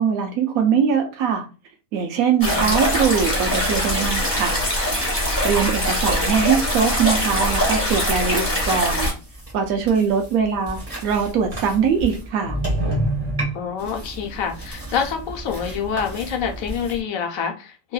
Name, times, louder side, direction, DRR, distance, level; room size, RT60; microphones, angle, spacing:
voice 1, 0.0-1.5 1.9-4.6 5.1-9.1 9.5-12.6, right 6 dB, 85° right, 1.1 m, -22 dB
voice 2, 2.4-2.9 13.5-17.9, left 7 dB, 80° left, 1.1 m, -27 dB
sound 1, 2.4-9.1, equal, 15° left, 1.1 m, -22 dB
sound 2, 8.5-17.0, right 1 dB, 25° right, 1.3 m, -30 dB
2.9 x 2.7 x 2.3 m
omnidirectional pair, 1.4 m